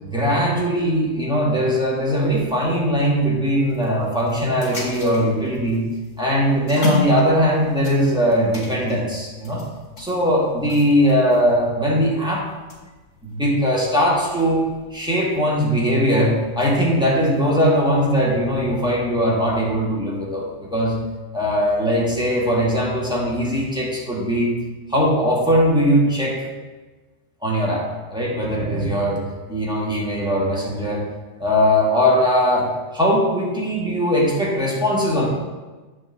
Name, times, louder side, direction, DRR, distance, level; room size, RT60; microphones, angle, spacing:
voice 1, 0.0-5.8 6.2-9.6 10.0-12.5 13.2-14.6 14.9-20.9 21.3-24.6 24.9-26.4 27.4-29.2 29.5-31.0 31.4-35.3, equal, 5° right, -5 dB, 1.9 m, -20 dB
sound 1, 2.0-16.9, left 3 dB, 70° left, 2.1 m, -36 dB
8.8 x 3.6 x 6.7 m, 1.2 s
omnidirectional pair, 1.3 m